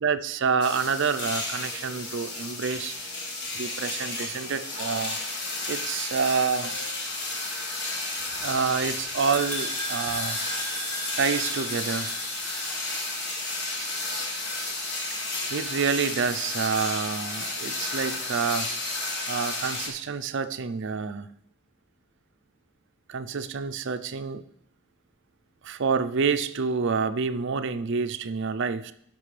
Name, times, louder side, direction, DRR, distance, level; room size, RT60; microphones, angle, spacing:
voice 1, 0.0-3.0 3.5-5.2 5.7-7.0 8.4-10.4 11.2-12.1 15.5-18.7 19.3-21.3 23.1-24.4 25.6-28.9, right 5 dB, 55° right, 0.5 m, -28 dB
sound 1, 0.6-19.9, left 2 dB, 50° left, 1.5 m, -32 dB
sound 2, 8.2-12.8, right 1 dB, 30° left, 3.3 m, -36 dB
15.0 x 6.0 x 3.3 m
head